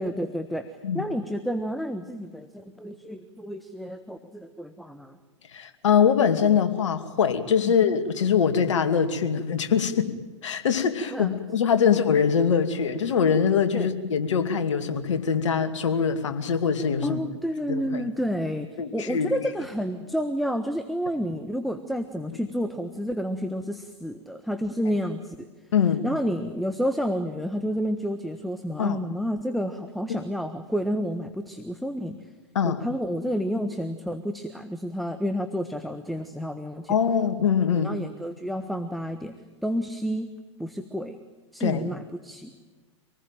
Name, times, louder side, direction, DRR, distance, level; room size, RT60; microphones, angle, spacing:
voice 1, 0.0-5.2 7.6-7.7 9.3-9.4 11.1-11.3 11.8-12.0 13.7-13.9 17.0-25.5 26.0-32.2 32.6-37.0 37.7-40.3 40.6-41.2 41.5-42.5, equal, ahead, 9 dB, 1.4 m, -30 dB
voice 2, 5.5-10.1 10.4-17.2 17.7-18.0 18.8-19.3 25.7-26.1 28.8-29.0 32.5-32.8 36.9-37.9 41.6-41.8, left 7 dB, 75° left, 7 dB, 2.6 m, -23 dB
26.5 x 19.5 x 9.2 m, 1.3 s
hypercardioid pair, 110°, 16 cm